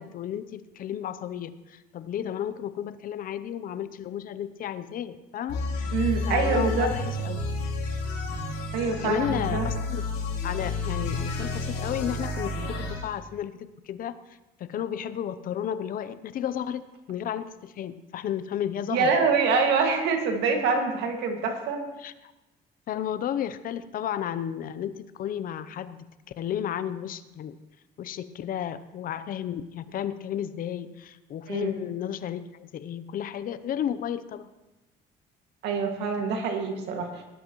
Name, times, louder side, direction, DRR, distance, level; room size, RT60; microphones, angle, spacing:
voice 1, 0.0-6.0 6.2-7.4 8.9-10.0 10.4-14.2 14.6-19.1 22.0-22.1 22.9-26.1 26.4-27.5 28.0-34.5, left 10 dB, 55° left, 13 dB, 0.7 m, -33 dB
sound 1, 5.5-13.0, left 2 dB, 75° left, 3.6 m, -30 dB
voice 2, 5.9-6.9 8.7-9.7 18.9-21.9 31.5-31.7 35.6-37.2, right 4 dB, 85° right, 3 dB, 2.1 m, -25 dB
18.5 x 11.5 x 3.1 m, 1.0 s
cardioid pair, 110°, 17 cm